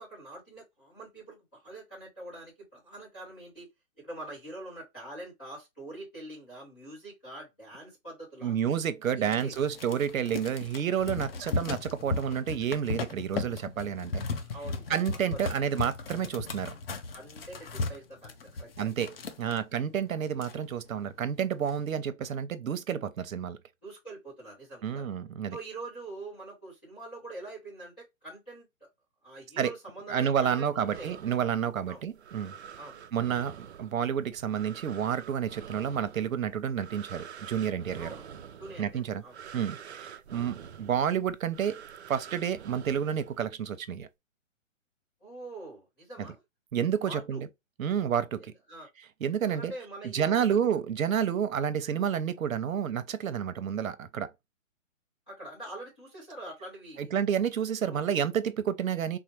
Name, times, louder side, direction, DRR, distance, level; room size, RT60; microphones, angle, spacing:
voice 1, 0.0-3.7 4.0-8.5 9.1-9.5 14.5-15.5 17.1-18.9 23.8-25.1 25.5-28.9 29.2-31.1 31.9-32.0 32.8-33.0 38.0-38.3 38.6-39.4 45.2-46.4 47.0-47.5 48.4-48.9 49.4-50.6 55.3-57.1 57.8-58.1, right 2 dB, 5° left, 0.6 m, -44 dB
voice 2, 8.4-14.2 14.9-16.7 18.8-19.1 19.4-23.6 24.8-25.6 29.6-29.7 30.1-32.5 33.1-38.2 38.8-39.2 39.5-44.1 46.2-46.3 46.7-47.5 47.8-48.5 49.2-49.7 50.0-54.3 57.0-59.2, right 8 dB, 90° right, 0.8 m, -30 dB
sound 1, 9.3-19.6 20.1-20.2 20.3-21.0 21.4-21.8, left 3 dB, 50° left, 0.7 m, -36 dB
sound 2, 30.4-43.7, right 8 dB, 55° right, 0.5 m, -47 dB
4.4 x 2.0 x 3.0 m
hypercardioid pair, 170°, 39 cm